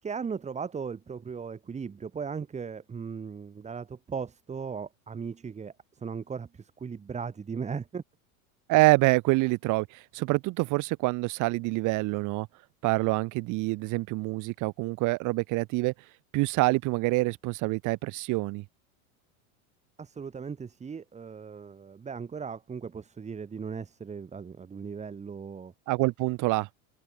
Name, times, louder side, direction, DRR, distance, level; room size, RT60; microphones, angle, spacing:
voice 1, 0.0-8.0 20.0-25.7, right 6 dB, 15° right, 4.5 m, -37 dB
voice 2, 8.7-12.5 12.8-15.9 16.3-18.6 25.9-26.7, right 23 dB, 45° right, 2.9 m, -26 dB
supercardioid pair, 150°, 43 cm